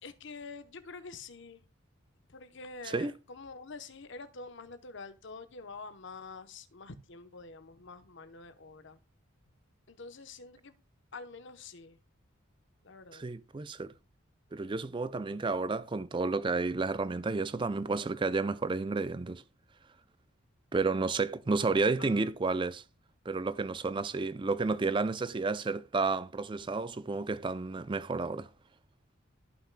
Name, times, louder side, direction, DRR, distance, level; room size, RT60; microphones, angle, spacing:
voice 1, 0.0-1.6 2.3-9.0 9.9-10.8 11.1-12.0 12.8-13.2 22.0-22.6, left 4 dB, 60° left, 0.9 m, -47 dB
voice 2, 13.1-13.9 14.5-19.4 20.7-22.8 23.3-28.5, right 3 dB, 25° right, 0.4 m, -31 dB
15.0 x 5.8 x 2.2 m
head